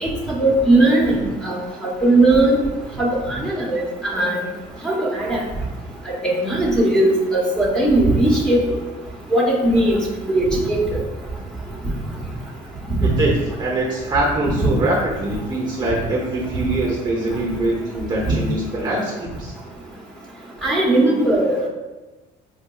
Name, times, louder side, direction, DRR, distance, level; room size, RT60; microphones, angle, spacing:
voice 1, 0.0-2.6 3.0-4.4 4.8-5.4 6.2-8.6 9.3-10.0 10.3-10.8 20.6-21.7, right 1 dB, 5° left, -4 dB, 1.0 m, -18 dB
voice 2, 13.0-19.5, right 2 dB, 25° right, -3 dB, 0.7 m, -23 dB
4.9 x 2.6 x 2.3 m, 1.1 s
cardioid pair, 110°, 17 cm